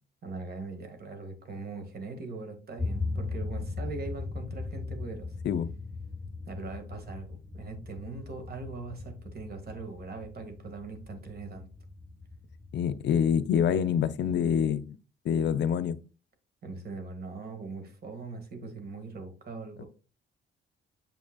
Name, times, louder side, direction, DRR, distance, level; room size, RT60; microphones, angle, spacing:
voice 1, 0.2-5.3 6.5-11.7 14.4-14.6 16.6-19.9, right 3 dB, 50° right, 1.8 m, -41 dB
sound 1, 2.8-14.3, left 3 dB, 10° left, 1.1 m, -39 dB
voice 2, 12.7-14.9 15.2-16.0, left 8 dB, 65° left, 0.6 m, -26 dB
7.0 x 6.1 x 2.3 m
cardioid pair, 90°, 20 cm